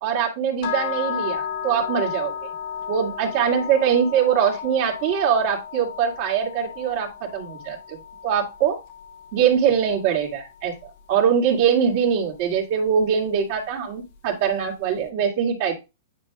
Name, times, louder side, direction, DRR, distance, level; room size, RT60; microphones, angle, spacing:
voice 1, 0.0-2.3 2.9-8.0 8.2-8.8 9.3-15.8, right 8 dB, 50° right, -2 dB, 2.4 m, -22 dB
sound 1, 0.6-10.7, left 8 dB, 55° left, 1.2 m, -34 dB
10.0 x 4.5 x 2.4 m, 0.25 s
hypercardioid pair, 135°, 0 cm